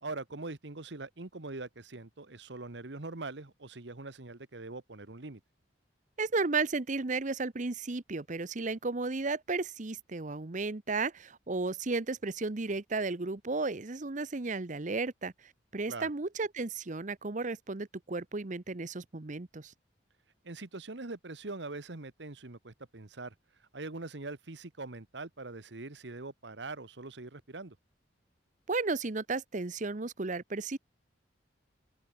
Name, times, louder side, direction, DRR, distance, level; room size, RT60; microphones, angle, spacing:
voice 1, 0.0-5.4 15.9-16.1 20.4-23.3 23.6-27.8, right 3 dB, 70° right, 1.4 m, -42 dB
voice 2, 6.2-15.3 15.7-19.7 28.7-30.8, right 3 dB, 40° right, 0.9 m, -34 dB
open air
head